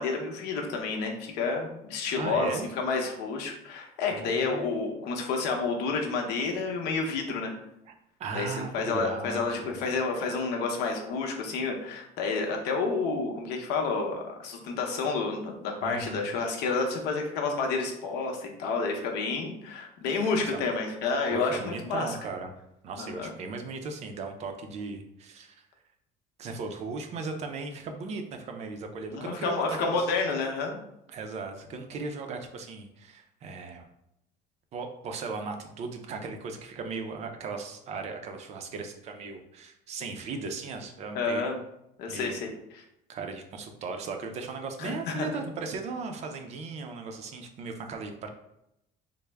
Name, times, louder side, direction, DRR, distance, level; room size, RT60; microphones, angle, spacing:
voice 1, 0.0-7.5 8.3-22.2 23.0-23.3 29.1-30.8 41.1-41.6 42.0-42.8 44.8-45.4, left 4 dB, 75° left, 2 dB, 0.7 m, -30 dB
voice 2, 2.2-2.7 4.1-4.7 7.9-8.0 8.2-9.8 15.8-16.3 20.5-20.6 21.3-22.5 22.8-25.6 26.4-30.1 31.1-33.8 34.7-41.4 42.1-42.5 43.1-48.3, right 4 dB, 40° right, 5 dB, 0.4 m, -37 dB
3.3 x 2.0 x 3.3 m, 0.81 s
cardioid pair, 155°, 17 cm